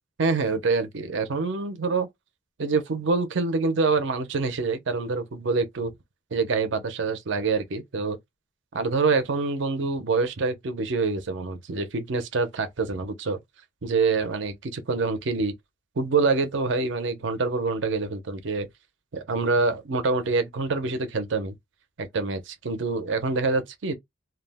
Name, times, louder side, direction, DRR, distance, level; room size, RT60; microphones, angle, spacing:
voice 1, 0.2-2.1 2.6-5.9 6.3-8.2 8.7-13.4 13.8-15.5 16.0-18.7 19.1-21.5 22.0-24.0, right 4 dB, 65° right, 0.5 m, -26 dB
2.3 x 2.0 x 3.3 m
head